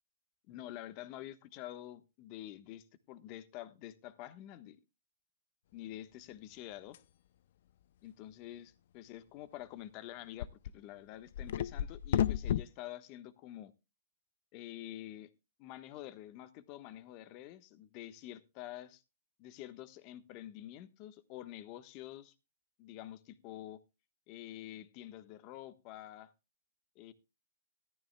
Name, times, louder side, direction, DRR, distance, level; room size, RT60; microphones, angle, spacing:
voice 1, 0.5-4.8 5.7-7.0 8.0-13.7 14.5-15.3 15.6-19.0 19.4-22.3 22.8-23.8 24.3-26.3 26.9-27.1, left 13 dB, 35° left, 1.2 m, -48 dB
sound 1, 6.9-7.0 10.4-10.7 11.3-12.7, left 10 dB, 60° left, 0.5 m, -31 dB
14.5 x 12.5 x 2.2 m
hypercardioid pair, 150°, 0 cm